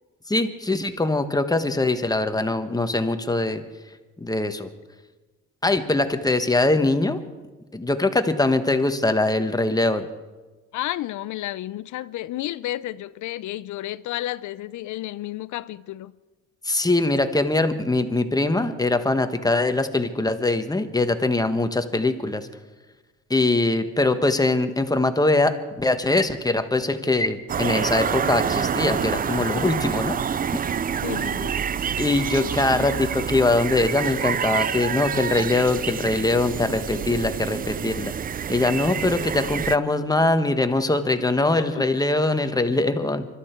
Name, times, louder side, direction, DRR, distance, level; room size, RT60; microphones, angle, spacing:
voice 1, 0.3-3.6 4.2-4.7 5.6-7.2 7.7-10.1 16.6-22.5 23.3-30.2 30.5-30.6 32.0-38.1 38.5-43.3, left 2 dB, 10° left, 1.2 m, -22 dB
voice 2, 10.7-16.1 31.0-31.6 41.4-41.8, left 14 dB, 75° left, 0.6 m, -32 dB
sound 1, 27.5-39.8, right 7 dB, 30° right, 0.4 m, -27 dB
25.0 x 13.0 x 4.5 m
cardioid pair, 90°, 30 cm